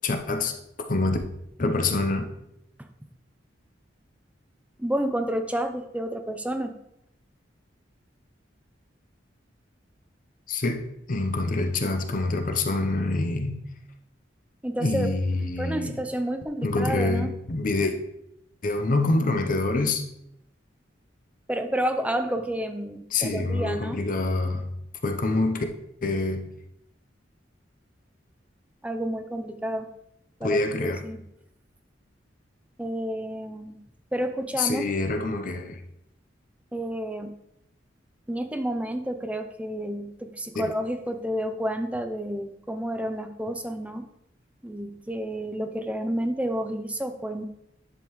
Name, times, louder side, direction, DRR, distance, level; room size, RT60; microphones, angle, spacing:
voice 1, 0.0-0.5 0.9-1.2 1.6-2.3 10.5-10.8 11.1-13.6 14.8-16.0 16.6-18.0 18.6-20.0 23.1-24.7 25.0-25.7 26.0-26.5 30.4-31.0 34.6-35.8 40.6-40.7, left 2 dB, 45° left, 5 dB, 0.7 m, -26 dB
voice 2, 4.8-6.8 14.6-15.1 15.6-17.3 21.5-24.0 28.8-29.9 30.4-31.2 32.8-33.8 34.1-34.8 36.7-37.3 38.3-44.0 44.6-47.4, right 1 dB, 5° right, 7 dB, 0.5 m, -30 dB
10.5 x 5.2 x 3.1 m, 0.80 s
head